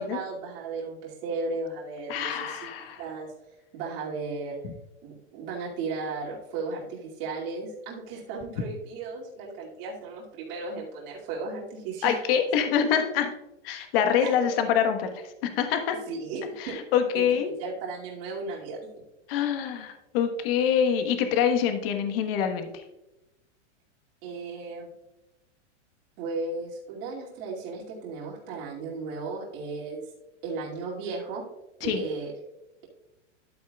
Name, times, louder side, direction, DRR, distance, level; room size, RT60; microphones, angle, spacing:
voice 1, 0.0-2.7 3.0-3.3 3.7-4.6 5.0-12.2 14.2-14.5 16.1-16.8 17.1-18.8 24.2-24.9 26.2-30.0 30.4-31.4 31.8-32.3, right 3 dB, 50° right, -5 dB, 2.5 m, -35 dB
voice 2, 2.1-3.0 12.0-13.3 13.6-15.9 16.6-17.5 19.3-22.7 31.8-32.0, left 8 dB, 50° left, 6 dB, 1.3 m, -25 dB
11.5 x 8.6 x 2.3 m, 0.94 s
hypercardioid pair, 140°, 36 cm